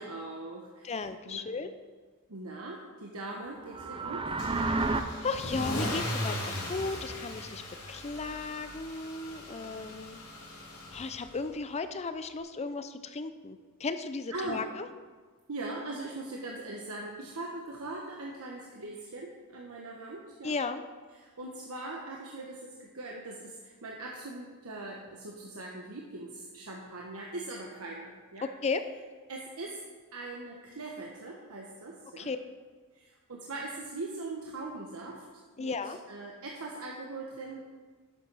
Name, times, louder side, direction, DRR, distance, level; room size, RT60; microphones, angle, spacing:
voice 1, 0.0-1.0 1.3-1.4 2.3-4.3 14.3-14.6 15.5-20.6 21.1-28.5 29.3-29.8 30.1-32.3 32.9-35.2 35.6-35.8 36.1-37.6, right 2 dB, 70° right, -1 dB, 1.2 m, -41 dB
voice 2, 0.8-1.7 4.7-4.9 5.2-7.6 7.9-10.2 10.9-14.9 20.4-20.8 28.4-28.8 32.2-32.4 35.6-36.0, left 4 dB, 30° left, 10 dB, 0.5 m, -35 dB
sound 1, 3.6-5.0, right 3 dB, 25° right, 0.5 m, -30 dB
Car / Engine starting / Accelerating revving vroom, 4.4-11.5, left 1 dB, 80° left, 3.1 m, -38 dB
10.5 x 6.7 x 6.2 m, 1.4 s
head